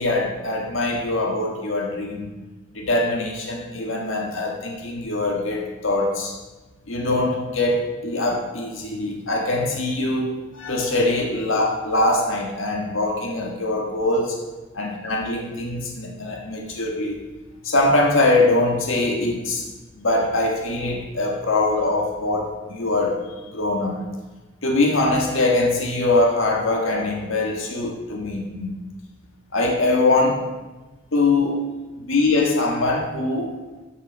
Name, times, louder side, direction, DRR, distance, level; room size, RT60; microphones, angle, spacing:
voice 1, 0.0-2.3 2.7-6.3 6.9-14.4 14.7-17.3 17.6-19.6 19.9-24.0 24.6-28.8 29.5-30.4 31.1-31.6 32.0-33.5, left 2 dB, 75° left, 0 dB, 1.6 m, -22 dB
13.0 x 6.6 x 5.2 m, 1.2 s
head